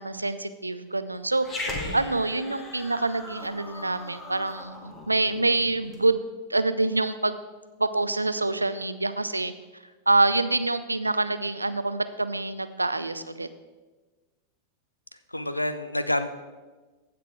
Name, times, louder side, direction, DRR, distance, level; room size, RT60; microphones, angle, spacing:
voice 1, 0.0-6.2 6.5-7.4 7.8-9.5 10.1-13.5, right 2 dB, 85° right, 12 dB, 0.5 m, -26 dB
Growling, 1.4-6.0, left 2 dB, 20° left, 1.7 m, -39 dB
voice 2, 1.7-2.1 15.3-16.3, left 1 dB, 85° left, 11 dB, 0.6 m, -29 dB
15.5 x 6.0 x 4.6 m, 1.3 s
figure-of-eight pair, 90°, 0 cm